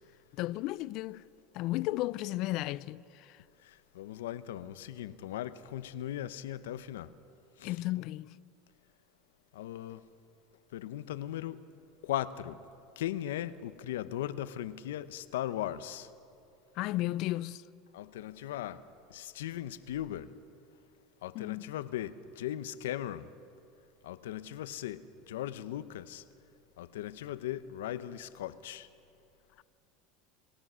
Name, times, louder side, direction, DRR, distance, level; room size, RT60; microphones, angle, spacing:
voice 1, 0.4-1.2 1.5-3.4 7.6-8.4 16.8-17.6 21.3-21.7, left 17 dB, 60° left, 0.4 m, -34 dB
voice 2, 3.6-7.1 7.6-7.8 9.5-10.0 10.7-11.6 12.0-12.6 13.0-16.1 17.9-18.8 19.1-20.3 21.2-23.3 24.0-26.2 26.8-28.9, left 12 dB, 90° left, 0.7 m, -38 dB
27.5 x 16.5 x 6.3 m
supercardioid pair, 110°, 0 cm